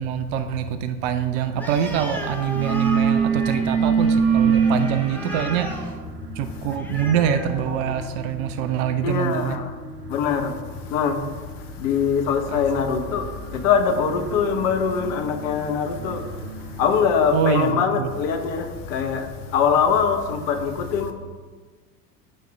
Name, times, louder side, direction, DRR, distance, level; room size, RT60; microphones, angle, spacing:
voice 1, 0.0-5.8 6.4-9.6 12.5-12.6 17.3-18.1, right 9 dB, 40° right, 0.6 m, -25 dB
sound 1, 1.3-17.2, right 4 dB, 80° right, 1.0 m, -41 dB
Animal, 1.5-8.3, left 1 dB, 5° left, 1.0 m, -36 dB
sound 2, 1.8-2.1 2.3-9.0, right 6 dB, 65° right, 1.6 m, -24 dB
voice 2, 9.0-9.7 10.1-10.5 10.9-11.2 11.8-16.3 16.8-21.1, left 6 dB, 45° left, 1.1 m, -22 dB
14.5 x 5.0 x 3.3 m
figure-of-eight pair, 75°, 49 cm